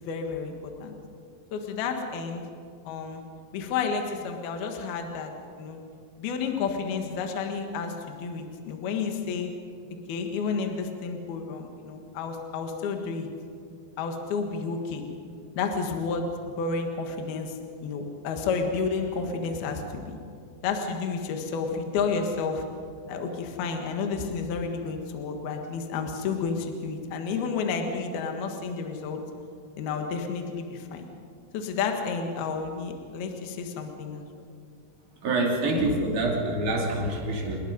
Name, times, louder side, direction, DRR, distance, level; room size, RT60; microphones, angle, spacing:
voice 1, 0.1-0.5 0.8-0.9 1.5-2.4 2.8-3.2 3.5-5.8 6.2-9.5 10.1-13.3 14.0-15.0 15.6-16.3 16.6-17.5 17.8-20.2 20.6-22.6 23.1-29.2 29.8-31.1 31.5-34.3, left 5 dB, 65° left, 4 dB, 3.3 m, -31 dB
voice 2, 35.2-37.6, right 2 dB, 50° right, -1 dB, 4.0 m, -26 dB
28.0 x 20.0 x 5.4 m, 2.3 s
omnidirectional pair, 5.1 m